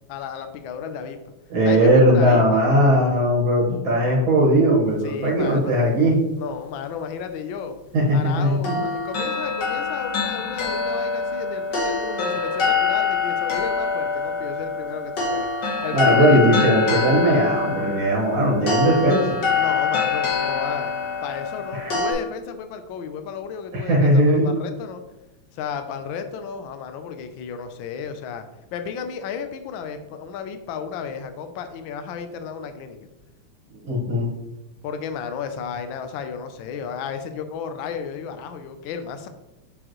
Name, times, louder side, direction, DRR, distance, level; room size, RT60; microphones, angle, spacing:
voice 1, 0.1-1.2 1.6-2.6 5.0-5.7 6.4-7.8 8.1-16.5 19.6-20.9 21.2-25.0 25.5-28.4 28.7-33.1 34.8-39.3, left 7 dB, 70° left, 8 dB, 1.3 m, -33 dB
voice 2, 1.5-6.2 7.9-8.8 15.9-19.4 21.7-22.0 23.7-24.5 33.8-34.3, equal, 65° right, -4 dB, 2.3 m, -18 dB
sound 1, 8.6-22.1, left 4 dB, 55° left, 2.0 m, -25 dB
7.2 x 5.1 x 3.0 m, 0.98 s
omnidirectional pair, 2.4 m